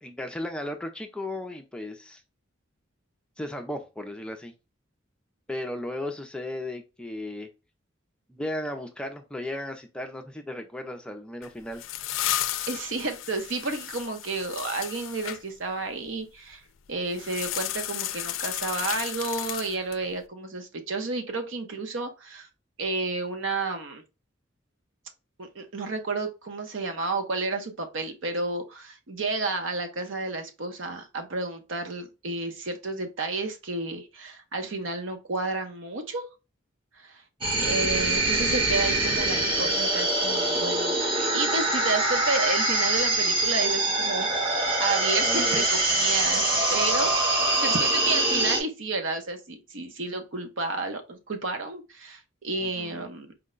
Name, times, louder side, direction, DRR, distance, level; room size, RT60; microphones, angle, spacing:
voice 1, 0.0-2.2 3.4-4.5 5.5-7.5 8.3-11.8 37.4-37.9 45.2-45.7 46.5-46.8 52.6-53.1, left 1 dB, 5° left, 0.5 m, -35 dB
sound 1, 11.4-15.4 17.1-20.1, left 12 dB, 80° left, 0.4 m, -33 dB
voice 2, 12.7-16.6 16.9-22.5 22.8-24.0 25.4-36.3 37.0-37.2 37.6-53.3, right 3 dB, 70° right, 0.8 m, -31 dB
sound 2, 37.4-48.6, right 2 dB, 25° right, 1.0 m, -24 dB
4.5 x 2.2 x 3.7 m
head